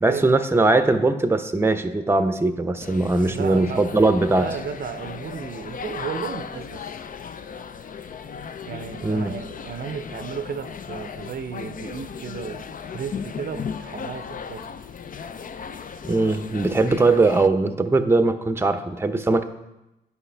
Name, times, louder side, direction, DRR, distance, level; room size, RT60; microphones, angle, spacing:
voice 1, 0.0-4.4 9.0-9.3 16.1-19.4, right 2 dB, 15° right, 9 dB, 0.7 m, -20 dB
sound 1, 2.8-17.5, left 6 dB, 45° left, 0.5 m, -36 dB
voice 2, 3.2-3.8 4.3-7.1 8.7-12.7 12.9-14.7, right 7 dB, 55° right, 10 dB, 0.6 m, -34 dB
9.9 x 4.8 x 3.3 m, 0.96 s
supercardioid pair, 50°, 19 cm